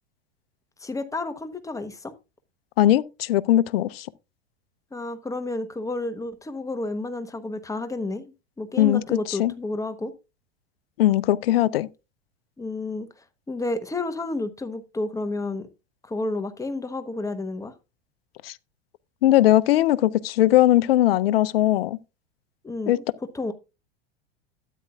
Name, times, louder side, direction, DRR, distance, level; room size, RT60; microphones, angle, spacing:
voice 1, 0.8-2.1 4.9-10.1 12.6-13.1 13.5-15.7 16.0-17.7 22.6-23.0 23.3-23.5, left 2 dB, 10° left, 1.1 m, -31 dB
voice 2, 2.8-4.1 8.8-9.0 9.3-9.5 11.0-11.9 18.4-18.5 19.2-22.0 22.9-23.0, left 14 dB, 65° left, 0.6 m, -19 dB
12.5 x 9.3 x 2.3 m
hypercardioid pair, 90°, 31 cm